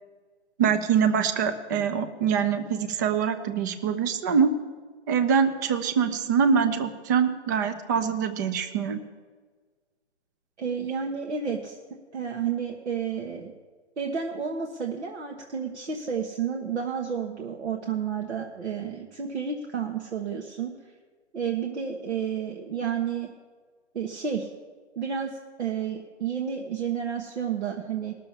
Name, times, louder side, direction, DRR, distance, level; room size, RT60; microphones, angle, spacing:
voice 1, 0.6-4.5 5.1-9.0, right 7 dB, 15° right, 10 dB, 0.4 m, -24 dB
voice 2, 10.6-11.8 12.1-13.5 14.0-20.7 21.3-23.3 23.9-24.5 25.0-28.2, right 7 dB, 70° right, 1 dB, 1.4 m, -31 dB
18.0 x 6.8 x 7.2 m, 1.5 s
hypercardioid pair, 140°, 34 cm